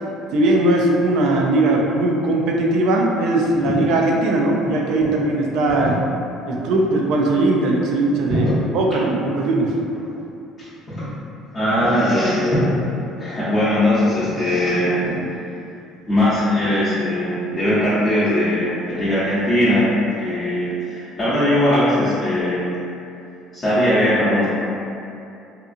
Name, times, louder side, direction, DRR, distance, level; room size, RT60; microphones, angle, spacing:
voice 1, 0.3-6.0 6.5-8.5 8.7-9.7, right 2 dB, 70° right, -1 dB, 0.4 m, -19 dB
voice 2, 11.5-12.8 13.2-15.1 16.1-19.9 20.2-22.6 23.5-24.5, left 1 dB, 35° left, -13 dB, 0.8 m, -19 dB
2.8 x 2.4 x 2.5 m, 2.6 s
supercardioid pair, 85°, 0 cm